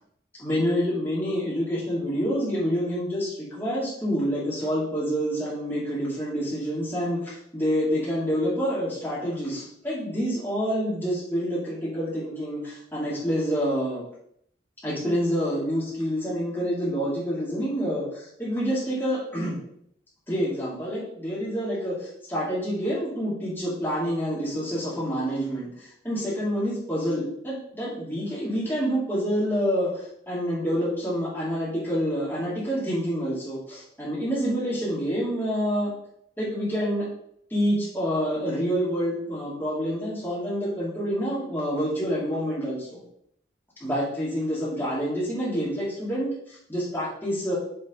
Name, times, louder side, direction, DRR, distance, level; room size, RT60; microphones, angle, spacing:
voice 1, 0.4-14.0 14.8-19.6 20.3-35.9 36.4-37.1 37.5-43.0 43.8-47.6, equal, 10° left, -8 dB, 2.9 m, -27 dB
8.0 x 4.6 x 4.0 m, 0.71 s
head